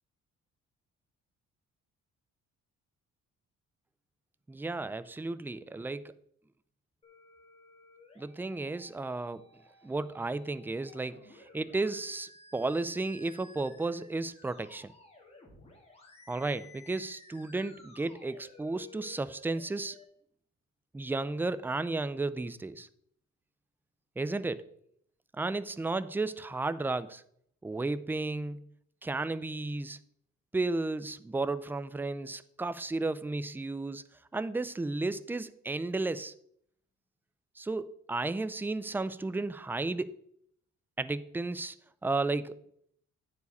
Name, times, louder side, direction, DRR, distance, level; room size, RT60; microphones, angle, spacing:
voice 1, 4.5-6.1 8.2-9.4 9.8-11.2 11.5-14.9 16.3-20.0 20.9-22.9 24.2-24.7 25.3-27.2 27.6-28.6 29.0-30.0 30.5-34.0 34.3-36.3 37.6-40.2 41.0-41.7 42.0-42.6, right 3 dB, 5° right, 15 dB, 0.3 m, -33 dB
sound 1, 7.0-20.0, left 3 dB, 20° left, 2.1 m, -56 dB
9.3 x 4.8 x 4.1 m, 0.67 s
cardioid pair, 90°, 30 cm